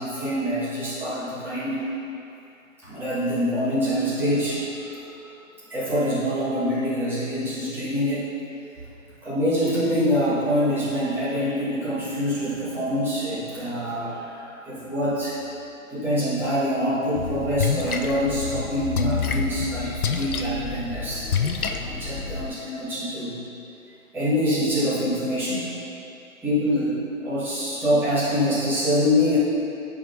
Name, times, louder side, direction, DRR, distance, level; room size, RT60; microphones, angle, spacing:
voice 1, 0.0-1.9 2.8-5.3 5.7-8.3 9.2-15.4 15.9-23.4 24.1-25.7 26.4-29.4, equal, 5° right, -12 dB, 1.3 m, -25 dB
Splash splatter, 17.2-22.5, left 5 dB, 85° left, 0.7 m, -28 dB
13.5 x 4.9 x 2.6 m, 2.8 s
hypercardioid pair, 150°, 42 cm